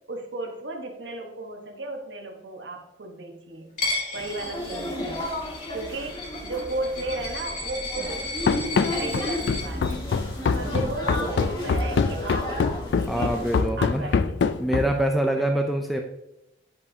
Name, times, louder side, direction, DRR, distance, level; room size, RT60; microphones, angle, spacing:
voice 1, 0.1-3.7 4.1-5.4 5.7-8.3 9.0-10.0 10.5-13.3 13.8-14.6 15.4-15.5, right 2 dB, 90° right, 2 dB, 1.2 m, -35 dB
Coin (dropping), 3.8-9.6, left 2 dB, 45° left, 2.0 m, -34 dB
sound 1, 4.1-13.6, left 1 dB, 30° left, 1.6 m, -33 dB
Run, 8.5-15.1, left 5 dB, 75° left, 0.3 m, -24 dB
voice 2, 13.1-14.1 14.6-16.0, right 1 dB, ahead, 3 dB, 0.4 m, -25 dB
9.4 x 5.4 x 2.8 m, 0.84 s
head